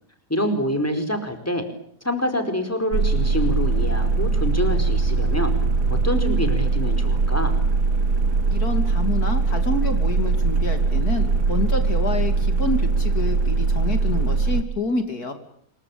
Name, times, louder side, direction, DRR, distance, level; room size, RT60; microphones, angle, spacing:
voice 1, 0.3-1.6 2.0-5.5 5.9-7.6, equal, 10° left, 6 dB, 4.6 m, -26 dB
sound 1, 2.9-14.6, right 3 dB, 75° right, 2.1 m, -21 dB
sound 2, 3.3-7.0, equal, 40° left, 7.5 m, -37 dB
voice 2, 8.5-15.3, left 2 dB, 65° left, 7 dB, 3.4 m, -28 dB
27.0 x 23.5 x 8.7 m, 0.65 s
omnidirectional pair, 1.7 m